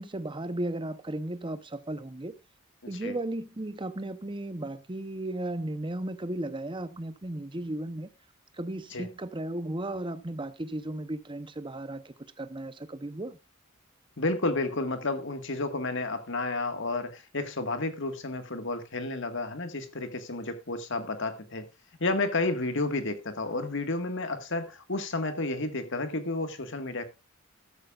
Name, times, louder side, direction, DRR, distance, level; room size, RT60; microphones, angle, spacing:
voice 1, 0.0-2.3 2.9-8.1 8.6-13.4, right 1 dB, 25° right, 0.8 m, -35 dB
voice 2, 2.8-3.2 8.9-9.1 14.2-21.7 22.0-27.0, left 2 dB, 60° left, 1.7 m, -31 dB
14.0 x 13.0 x 2.4 m
head